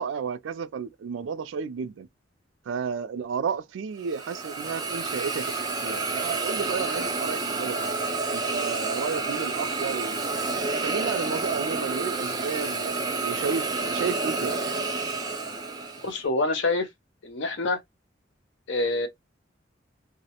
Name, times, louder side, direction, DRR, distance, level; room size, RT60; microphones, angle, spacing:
voice 1, 0.0-2.1 2.7-5.5 5.8-7.9 8.3-10.2 10.8-14.6, right 6 dB, 80° right, 0.3 m, -32 dB
Hiss, 4.0-16.2, right 3 dB, 20° right, 0.5 m, -29 dB
voice 2, 16.0-16.9 17.2-17.8 18.7-19.1, left 2 dB, 70° left, 0.7 m, -26 dB
2.3 x 2.0 x 2.8 m
head